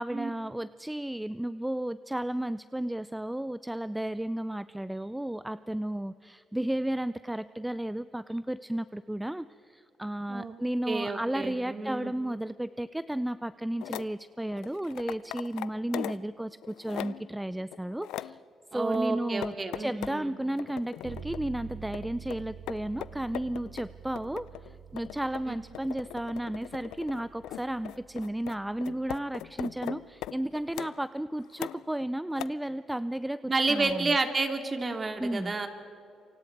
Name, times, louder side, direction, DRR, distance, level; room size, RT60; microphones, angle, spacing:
voice 1, 0.0-18.4 18.7-34.1 35.2-35.5, right 1 dB, 5° right, 15 dB, 0.5 m, -33 dB
voice 2, 10.9-12.1 18.7-20.4 25.5-25.6 33.5-35.7, right 3 dB, 30° right, 6 dB, 2.6 m, -30 dB
sound 1, 13.8-14.1 14.5-16.3 16.6-17.3 17.7-18.4 18.9-20.2 20.6-21.5 21.9-31.0 31.5-32.0 32.4-32.5, left 13 dB, 90° left, 0.5 m, -40 dB
sound 2, 21.0-30.8, right 8 dB, 65° right, 2.1 m, -48 dB
28.0 x 25.0 x 4.7 m, 2.6 s
cardioid pair, 90°, 0 cm